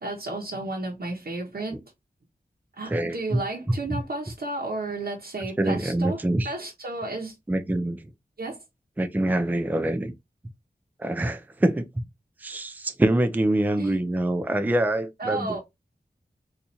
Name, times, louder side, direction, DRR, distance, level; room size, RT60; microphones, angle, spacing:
voice 1, 0.0-1.8 2.8-7.3 8.4-8.6 13.8-14.0 15.2-15.6, right 2 dB, 70° right, 0.9 m, -32 dB
voice 2, 2.9-3.4 5.6-6.5 7.5-8.1 9.0-10.1 11.0-12.1 12.4-15.6, right 1 dB, 10° right, 0.4 m, -25 dB
4.2 x 2.5 x 2.6 m
wide cardioid pair, 75°, 17 cm